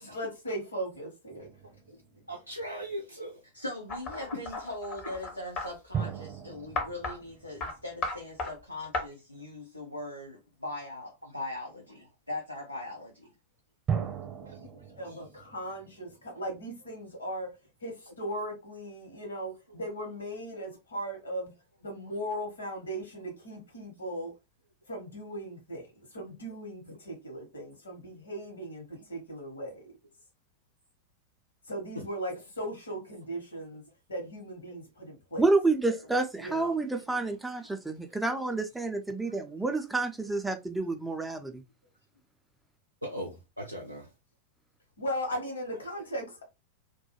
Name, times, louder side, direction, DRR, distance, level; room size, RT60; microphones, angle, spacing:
voice 1, 0.0-1.5 15.0-17.5 17.8-21.5 21.8-24.3 24.9-29.8 31.7-33.8 34.1-35.4 36.4-36.8 45.0-46.4, equal, 70° left, 1.0 m, -38 dB
sound 1, 1.3-3.0 5.9-8.6 13.9-16.9, right 7 dB, 25° right, 0.8 m, -38 dB
voice 2, 1.6-2.0 2.3-3.4 14.4-15.2 32.0-32.1 34.7-34.8 43.0-44.1, equal, 90° right, 0.4 m, -40 dB
voice 3, 3.5-13.3, left 1 dB, 85° left, 0.5 m, -40 dB
sound 2, 3.9-5.7 6.8-7.2 7.6-7.7 8.0-8.5 8.9-9.0, left 3 dB, 35° left, 0.6 m, -34 dB
voice 4, 35.4-41.6, right 3 dB, 5° right, 0.4 m, -29 dB
2.2 x 2.2 x 2.9 m
figure-of-eight pair, 90°, 0 cm